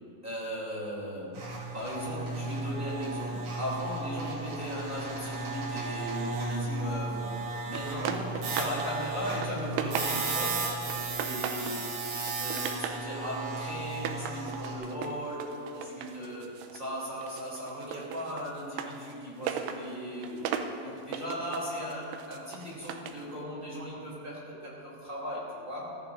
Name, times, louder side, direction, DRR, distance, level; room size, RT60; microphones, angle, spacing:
voice 1, 0.2-11.9 12.3-20.5 20.8-26.0, equal, 15° right, -7 dB, 2.2 m, -37 dB
sound 1, 1.3-14.7, right 3 dB, 55° right, 3.0 m, -35 dB
sound 2, 7.7-8.9 9.2-10.5 10.9-11.8 12.2-13.1 13.9-16.9 17.2-23.2, right 8 dB, 85° right, 2.5 m, -37 dB
22.5 x 14.5 x 2.6 m, 2.9 s
omnidirectional pair, 5.6 m